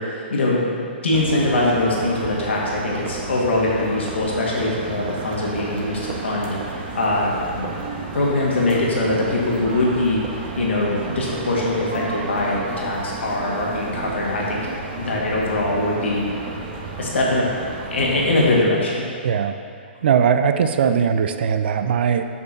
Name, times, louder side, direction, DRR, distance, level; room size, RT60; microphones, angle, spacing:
voice 1, 0.1-6.5 7.0-7.6 8.1-10.2 10.6-16.2 17.0-17.5 17.9-19.0, left 2 dB, 80° left, -4 dB, 1.9 m, -22 dB
sound 1, 1.1-18.6, right 3 dB, 40° right, 1.3 m, -32 dB
voice 2, 19.2-19.5 20.0-22.2, right 7 dB, 65° right, 9 dB, 0.6 m, -19 dB
8.2 x 4.7 x 6.0 m, 2.4 s
hypercardioid pair, 130°, 6 cm